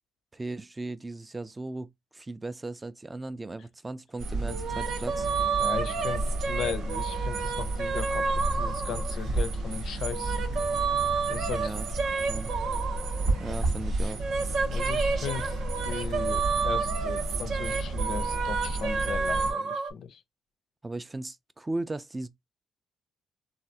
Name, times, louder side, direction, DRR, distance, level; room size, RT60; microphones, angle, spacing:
voice 1, 0.3-5.3 11.5-11.9 12.3-12.5 13.3-14.3 20.8-22.3, right 2 dB, 20° right, 0.3 m, -37 dB
sound 1, 4.2-19.5, right 2 dB, 90° right, 1.0 m, -32 dB
sound 2, 4.5-9.4 9.9-13.7 14.0-19.9, right 5 dB, 65° right, 0.6 m, -31 dB
voice 2, 5.6-10.4 11.3-11.7 14.7-15.6 15.8-20.2, left 7 dB, 70° left, 0.4 m, -37 dB
3.2 x 2.3 x 2.7 m
cardioid pair, 90°, 0 cm